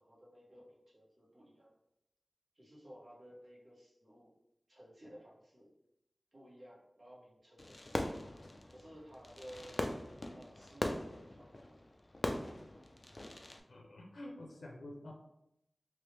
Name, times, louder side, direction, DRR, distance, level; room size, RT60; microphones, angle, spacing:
voice 1, 0.0-1.7 2.5-4.3 4.7-5.7 6.3-8.2 8.7-9.9 10.3-11.8, equal, 45° right, -6 dB, 1.4 m, -56 dB
Fireworks, 7.6-13.6, left 1 dB, 35° left, 0.3 m, -41 dB
voice 2, 13.7-15.1, left 1 dB, 90° left, 0 dB, 0.5 m, -48 dB
3.0 x 2.9 x 3.3 m, 0.82 s
wide cardioid pair, 75°, 0 cm